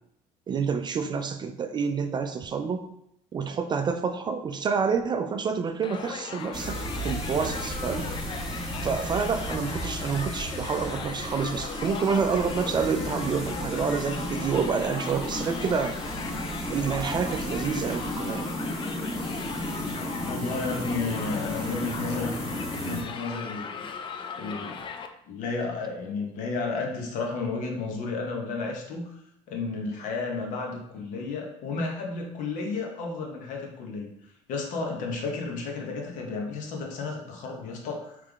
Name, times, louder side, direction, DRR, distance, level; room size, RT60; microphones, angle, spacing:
voice 1, 0.5-2.9 3.3-6.8 7.0-8.1 8.8-16.0 16.7-18.5, right 5 dB, 30° right, 7 dB, 0.4 m, -28 dB
Crowd, 5.8-25.1, left 6 dB, 35° left, 0.4 m, -38 dB
sound 1, 6.5-23.0, equal, 5° right, 1.4 m, -34 dB
voice 2, 20.2-22.4 22.8-24.8 25.3-29.2 29.5-38.2, left 3 dB, 65° left, 1 dB, 1.1 m, -32 dB
3.5 x 3.2 x 3.5 m, 0.77 s
supercardioid pair, 95°, 14 cm